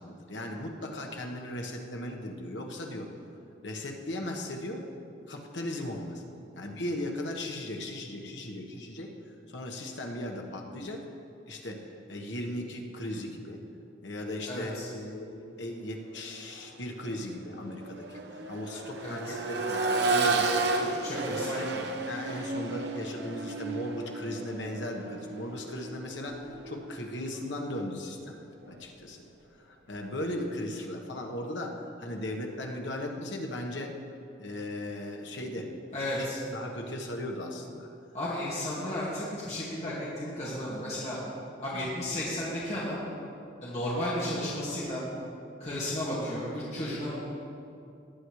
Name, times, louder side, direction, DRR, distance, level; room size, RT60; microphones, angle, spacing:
voice 1, 0.0-3.1 3.6-4.9 5.3-6.2 6.6-9.1 9.5-11.0 11.5-13.6 14.0-21.7 22.1-28.4 28.7-29.2 29.6-34.0 34.4-35.7 36.1-36.3 36.5-37.9 39.5-39.7 41.7-41.9, left 1 dB, 80° left, 1 dB, 1.3 m, -37 dB
voice 2, 14.5-14.9 19.0-19.4 21.0-21.8 35.9-36.4 38.1-41.2 41.6-43.0 43.6-45.0 45.6-47.2, left 1 dB, 35° left, -8 dB, 2.0 m, -33 dB
Accelerating revving vroom, 16.4-16.6 17.0-26.9 28.6-28.7, right 3 dB, 65° right, 0.9 m, -32 dB
18.5 x 9.7 x 3.2 m, 2.5 s
head